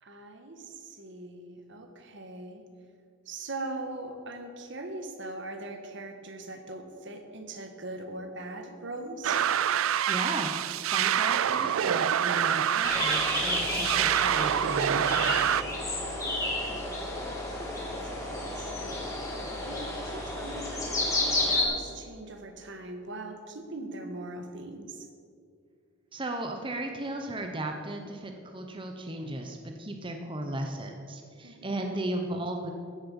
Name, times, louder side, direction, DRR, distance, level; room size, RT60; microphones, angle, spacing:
voice 1, 0.0-2.7 3.2-9.4 17.5-19.1 19.6-25.1 31.4-31.9, right 2 dB, 60° right, 6 dB, 1.5 m, -41 dB
sound 1, 9.2-15.6, right 9 dB, 85° right, 0.4 m, -26 dB
voice 2, 10.1-10.5 10.8-15.3 26.1-32.7, right 1 dB, 25° right, 4 dB, 1.0 m, -35 dB
sound 2, 12.8-21.6, left 2 dB, 15° left, 3.0 m, -31 dB
15.5 x 7.8 x 7.0 m, 2.3 s
head